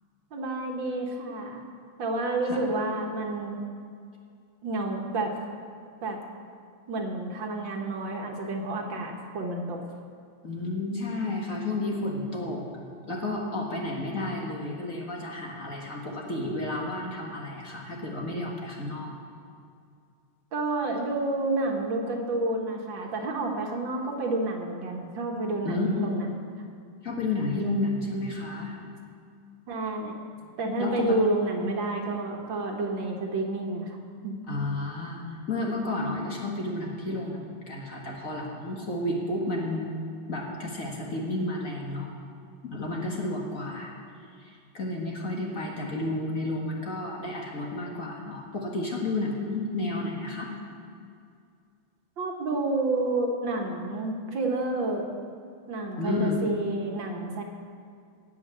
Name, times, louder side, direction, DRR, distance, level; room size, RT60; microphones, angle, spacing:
voice 1, 0.3-1.6 2.0-3.6 4.6-5.3 6.0-6.2 6.9-9.8 20.5-26.3 29.7-30.2 30.6-34.0 34.2-34.4 52.2-55.0 55.7-57.4, right 2 dB, 65° right, 1 dB, 1.9 m, -29 dB
voice 2, 10.4-12.6 13.1-19.2 25.6-26.2 27.0-28.7 30.8-31.2 34.5-37.4 37.7-40.0 40.3-42.1 42.6-43.9 44.4-50.5 56.0-56.4, left 2 dB, 40° left, -2 dB, 1.9 m, -31 dB
16.5 x 5.8 x 8.3 m, 2.3 s
omnidirectional pair, 2.3 m